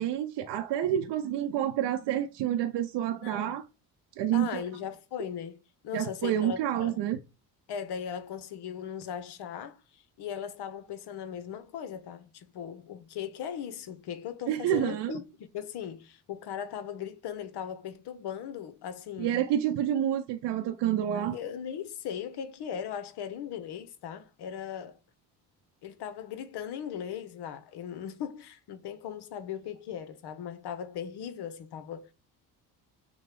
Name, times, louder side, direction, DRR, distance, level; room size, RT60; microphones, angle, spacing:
voice 1, 0.0-3.6 4.2-4.6 5.9-7.2 14.5-15.2 19.2-21.4, right 11 dB, 60° right, 0.7 m, -28 dB
voice 2, 3.2-3.5 4.3-7.0 7.7-19.4 21.1-25.0 25.8-32.1, left 8 dB, 55° left, 0.8 m, -38 dB
6.1 x 2.2 x 3.2 m
hypercardioid pair, 55°, 47 cm